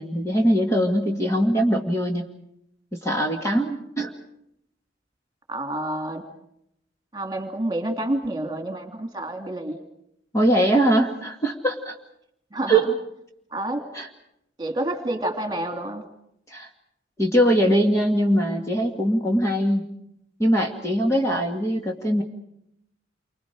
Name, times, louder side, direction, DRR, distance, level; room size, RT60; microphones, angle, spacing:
voice 1, 0.0-2.2 3.0-4.1 10.3-11.9 12.7-12.9 13.9-14.1 16.5-16.7 17.2-19.9 20.4-22.2, right 1 dB, 15° left, 1 dB, 2.0 m, -21 dB
voice 2, 5.5-6.2 7.1-9.8 12.5-12.9 13.5-13.8 14.6-16.0, right 1 dB, 20° right, 5 dB, 2.9 m, -28 dB
29.0 x 25.5 x 5.0 m, 0.76 s
head